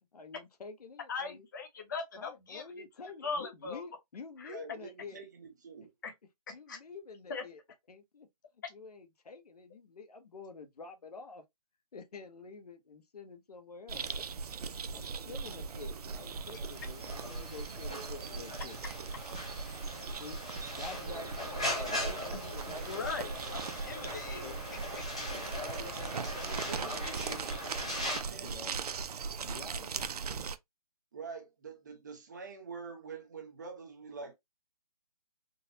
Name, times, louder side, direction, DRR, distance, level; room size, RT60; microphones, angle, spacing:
voice 1, 0.1-1.5 2.2-5.2 6.5-7.6 7.9-8.3 8.7-11.4 11.9-14.1 14.4-14.5 14.9-18.8 20.1-20.4 20.7-23.5 24.4-24.6 25.3-27.5 27.8-28.7 29.4-30.0, left 4 dB, 75° left, 0.9 m, -48 dB
voice 2, 1.1-2.7 3.2-3.8 4.4-4.6 6.0-6.1 6.5-6.8 7.3-7.4 18.8-18.9 22.7-24.5, left 5 dB, 30° left, 0.7 m, -39 dB
voice 3, 4.5-5.9 26.0-27.1 28.2-28.6 31.1-34.3, right 5 dB, 30° right, 0.6 m, -46 dB
sound 1, 13.9-30.6, right 5 dB, 75° right, 0.5 m, -39 dB
sound 2, 15.8-28.2, left 1 dB, 10° left, 0.3 m, -40 dB
3.9 x 2.0 x 2.7 m
hypercardioid pair, 170°, 20 cm